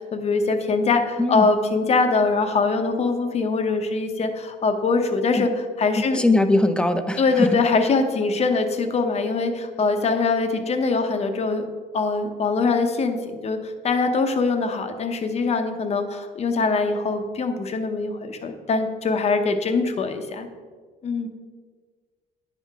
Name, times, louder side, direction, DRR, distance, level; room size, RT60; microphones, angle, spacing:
voice 1, 0.1-5.5 5.8-6.2 7.2-11.6 11.9-20.5 21.0-21.3, left 4 dB, 40° left, 6 dB, 0.9 m, -23 dB
voice 2, 5.9-7.5, left 2 dB, 5° left, 8 dB, 0.5 m, -21 dB
9.8 x 5.7 x 3.6 m, 1.5 s
cardioid pair, 110°, 17 cm